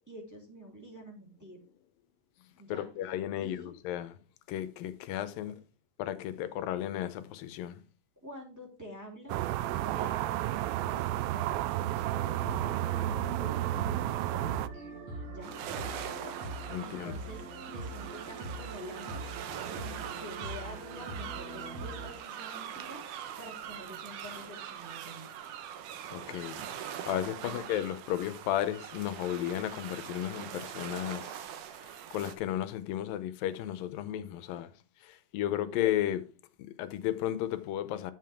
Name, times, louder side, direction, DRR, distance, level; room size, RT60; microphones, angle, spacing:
voice 1, 0.0-1.6 2.6-2.9 3.4-3.7 8.2-12.4 12.8-14.5 15.2-15.6 16.8-19.2 19.6-23.0 23.4-25.3 27.4-27.6, equal, 5° right, 2.8 m, -48 dB
voice 2, 2.7-4.2 4.5-5.5 6.0-7.8 16.7-17.2 26.1-26.6 27.1-31.4 31.8-34.7 35.0-36.2 36.6-38.1, left 12 dB, 85° left, 2.5 m, -34 dB
sound 1, 9.3-14.7, right 14 dB, 90° right, 2.4 m, -31 dB
sound 2, 12.0-22.1, right 2 dB, 50° right, 2.7 m, -42 dB
sound 3, 15.4-32.3, right 9 dB, 70° right, 2.4 m, -42 dB
11.0 x 7.6 x 3.6 m
omnidirectional pair, 4.0 m